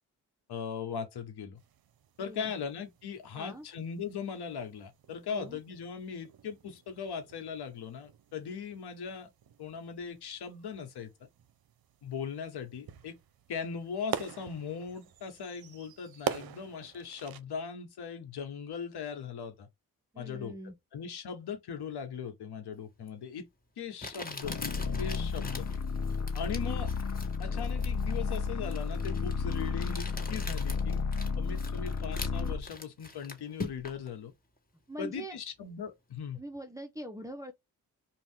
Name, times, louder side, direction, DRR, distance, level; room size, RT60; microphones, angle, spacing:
voice 1, 0.5-1.6 2.2-9.3 9.6-11.1 12.0-13.1 13.5-19.7 20.2-20.5 20.9-23.5 23.8-25.7 26.3-26.9 27.4-31.1 31.4-34.3 35.0-36.4, left 6 dB, 80° left, 1.2 m, -39 dB
sound 1, 1.6-17.4, right 9 dB, 65° right, 0.7 m, -45 dB
voice 2, 2.2-2.5 3.3-3.7 5.3-5.6 20.1-20.8 34.9-35.4 36.4-37.5, right 1 dB, 10° right, 0.7 m, -42 dB
Crumpling crinkling, 23.1-23.2 24.0-34.1, left 3 dB, 20° left, 1.5 m, -44 dB
sound 2, 24.4-32.7, left 5 dB, 45° left, 0.9 m, -32 dB
2.8 x 2.4 x 3.5 m
supercardioid pair, 45°, 39 cm